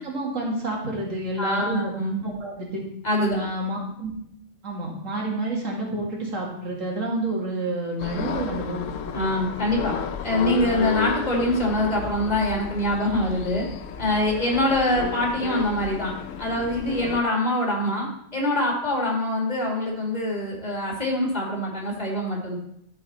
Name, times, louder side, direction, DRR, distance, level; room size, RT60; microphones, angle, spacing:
voice 1, 0.0-1.9 2.2-2.7 3.3-4.1 4.6-8.9, right 1 dB, 85° right, -2 dB, 2.4 m, -29 dB
voice 2, 1.4-2.2 3.0-3.4 9.1-9.9 10.2-13.6 14.0-16.1 16.4-22.6, left 1 dB, 35° left, -2 dB, 2.2 m, -24 dB
sound 1, 8.0-17.2, left 8 dB, 85° left, 1.0 m, -32 dB
12.5 x 4.7 x 4.1 m, 0.73 s
omnidirectional pair, 1.3 m